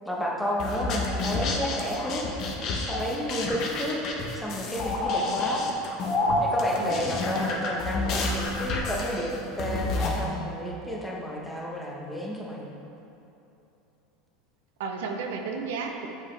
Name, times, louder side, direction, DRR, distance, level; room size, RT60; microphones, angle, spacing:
voice 1, 0.0-2.3 2.9-4.0 4.3-5.7 6.4-12.8, equal, 5° left, -3 dB, 1.0 m, -31 dB
sound 1, 0.6-10.2, left 2 dB, 45° left, 0.9 m, -29 dB
voice 2, 5.1-5.5 6.8-7.0 14.8-16.1, right 5 dB, 85° right, 3 dB, 0.6 m, -33 dB
7.3 x 5.7 x 3.3 m, 2.9 s
supercardioid pair, 125°, 0 cm